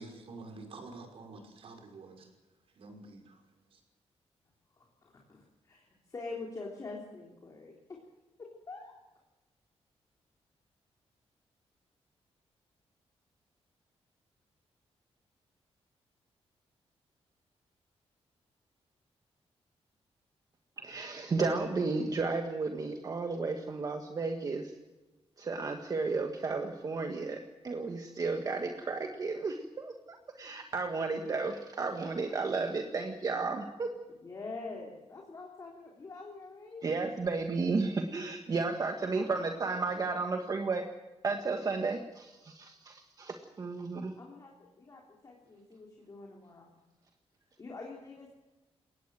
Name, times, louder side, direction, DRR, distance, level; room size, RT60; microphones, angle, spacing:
voice 1, 0.0-2.3 2.8-3.4 3.7-3.8, right 3 dB, 60° right, 4 dB, 5.3 m, -48 dB
voice 2, 4.8-8.0 8.4-8.9 34.2-36.9 39.1-40.3 44.2-46.8 47.6-48.3, left 3 dB, 30° left, -1 dB, 3.6 m, -46 dB
voice 3, 20.8-24.7 25.4-27.4 27.6-33.9 36.8-40.8 41.2-44.2, right 4 dB, 35° right, 4 dB, 1.7 m, -33 dB
22.0 x 18.0 x 7.7 m, 1.1 s
wide cardioid pair, 160°, 11 cm